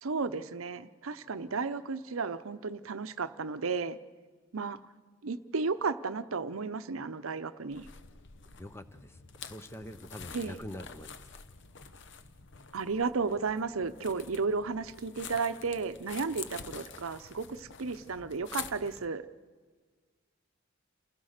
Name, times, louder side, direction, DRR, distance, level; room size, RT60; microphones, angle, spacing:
voice 1, 0.0-4.0 4.5-4.8 5.2-7.9 10.3-10.6 12.7-19.3, right 4 dB, 80° right, 12 dB, 0.8 m, -33 dB
sound 1, 7.7-19.1, left 6 dB, 55° left, 0.9 m, -47 dB
voice 2, 8.6-11.1, left 1 dB, 10° left, 11 dB, 0.7 m, -45 dB
28.5 x 16.5 x 6.6 m, 1.5 s
head